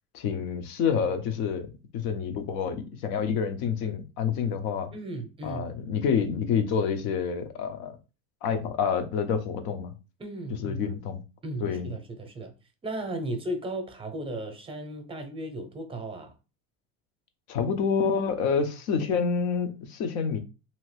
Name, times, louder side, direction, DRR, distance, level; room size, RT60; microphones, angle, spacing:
voice 1, 0.1-4.9 5.4-8.0 8.4-9.9 10.6-11.2 11.6-11.9 17.5-20.4, left 6 dB, 70° left, 0.7 m, -28 dB
voice 2, 4.9-5.7 10.2-10.8 11.4-12.5 12.8-16.3, right 1 dB, 15° right, 0.7 m, -35 dB
2.8 x 2.5 x 3.2 m
supercardioid pair, 125°, 33 cm